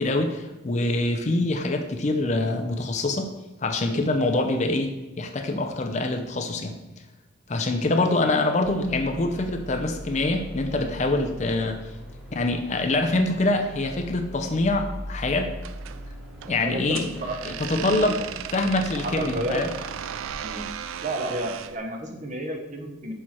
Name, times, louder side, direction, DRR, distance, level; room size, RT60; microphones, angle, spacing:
voice 1, 0.0-3.3 3.6-4.9 5.2-6.7 7.5-11.8 12.3-15.5 16.5-17.1 17.4-18.2 18.5-19.7, left 2 dB, 35° left, 5 dB, 0.5 m, -25 dB
sound 1, 8.6-21.7, equal, 5° right, 1.3 m, -41 dB
sound 2, 15.6-21.8, right 9 dB, 90° right, 0.3 m, -37 dB
voice 2, 16.4-18.3 19.0-19.7 20.4-20.7 21.0-23.1, right 1 dB, 35° right, 3 dB, 0.9 m, -32 dB
6.4 x 4.5 x 4.3 m, 1.0 s
head